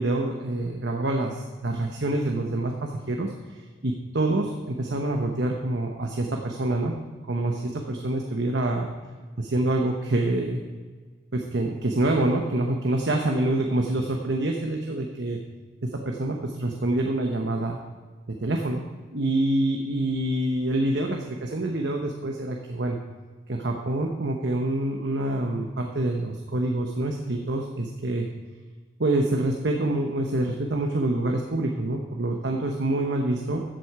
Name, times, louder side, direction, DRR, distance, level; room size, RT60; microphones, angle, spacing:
voice 1, 0.0-3.3 3.8-6.9 7.3-8.9 9.4-10.6 11.3-15.4 15.8-17.8 18.3-18.8 19.1-23.0 23.5-28.3 29.0-33.6, right 1 dB, 55° right, 2 dB, 0.9 m, -26 dB
14.0 x 7.8 x 4.7 m, 1.4 s
head